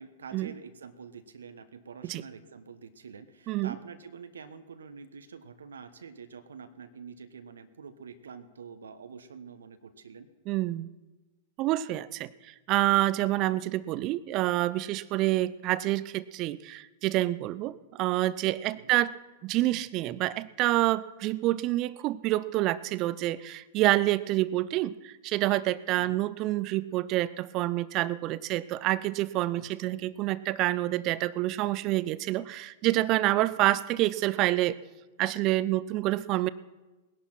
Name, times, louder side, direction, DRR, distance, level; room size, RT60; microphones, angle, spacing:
voice 1, 0.0-10.3 13.4-13.6 18.7-18.9 26.0-26.2 29.5-30.0, right 5 dB, 75° right, 10 dB, 1.1 m, -47 dB
voice 2, 10.5-10.9 11.6-19.1 19.4-34.8 35.2-36.5, right 16 dB, 40° right, 18 dB, 0.7 m, -27 dB
20.0 x 11.0 x 5.9 m, 1.1 s
figure-of-eight pair, 100°, 0 cm